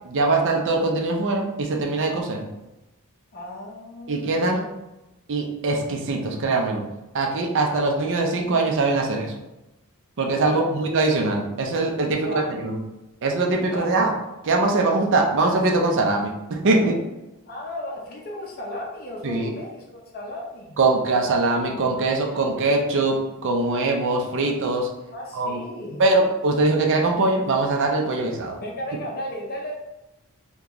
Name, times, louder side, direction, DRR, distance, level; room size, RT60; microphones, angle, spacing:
voice 1, 0.1-2.4 4.1-4.6 5.3-6.8 7.1-9.3 10.2-12.8 13.2-14.1 14.4-17.0 19.2-19.6 20.8-24.9 25.3-25.6 26.0-28.6, right 2 dB, 60° right, 1 dB, 0.5 m, -22 dB
voice 2, 3.3-4.7 10.5-10.8 12.2-12.7 13.7-14.3 17.5-20.8 21.6-21.7 25.1-26.0 28.6-29.7, left 1 dB, 45° left, -2 dB, 0.5 m, -35 dB
2.9 x 2.2 x 3.7 m, 0.97 s
head